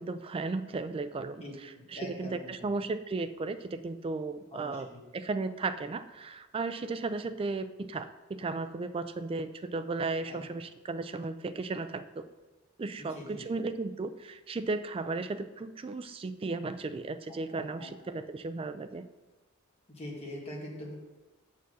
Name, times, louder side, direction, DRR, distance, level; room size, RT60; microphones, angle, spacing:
voice 1, 0.0-4.9 5.1-12.3 12.8-19.1, right 3 dB, 25° right, 11 dB, 0.3 m, -35 dB
voice 2, 1.9-2.7 4.5-5.0 10.3-10.4 13.0-13.5 17.8-17.9 19.9-20.9, left 1 dB, 30° left, -3 dB, 1.8 m, -43 dB
6.8 x 4.7 x 6.2 m, 1.2 s
head